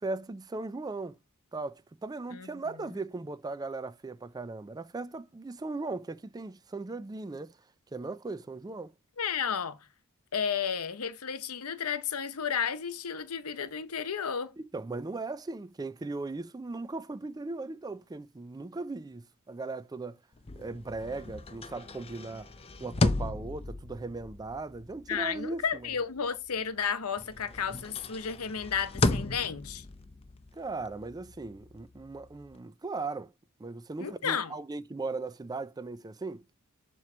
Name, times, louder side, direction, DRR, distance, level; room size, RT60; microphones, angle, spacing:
voice 1, 0.0-1.2 1.5-7.5 7.9-8.9 14.7-20.2 20.6-22.5 22.8-25.9 30.5-33.3 33.6-36.4, right 3 dB, 15° right, 0.3 m, -38 dB
voice 2, 9.2-9.8 10.3-14.5 25.1-29.8 34.0-34.5, left 7 dB, 80° left, 0.8 m, -32 dB
sound 1, 20.4-26.8 27.2-32.6, left 2 dB, 25° left, 0.6 m, -35 dB
7.5 x 3.0 x 5.9 m
head